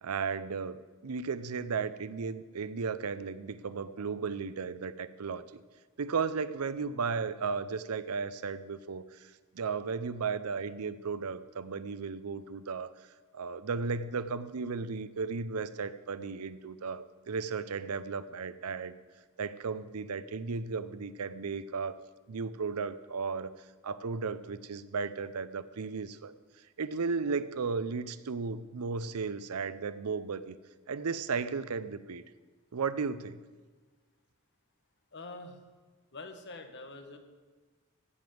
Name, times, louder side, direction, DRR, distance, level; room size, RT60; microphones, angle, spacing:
voice 1, 0.0-5.6 6.0-12.9 13.3-18.9 19.4-22.0 22.3-23.5 23.8-26.3 26.8-30.6 30.9-32.2 32.7-33.4, right 5 dB, 85° right, 15 dB, 0.6 m, -35 dB
voice 2, 35.1-35.6 36.1-37.2, left 2 dB, 55° left, 6 dB, 1.3 m, -45 dB
15.0 x 5.2 x 7.8 m, 1.4 s
head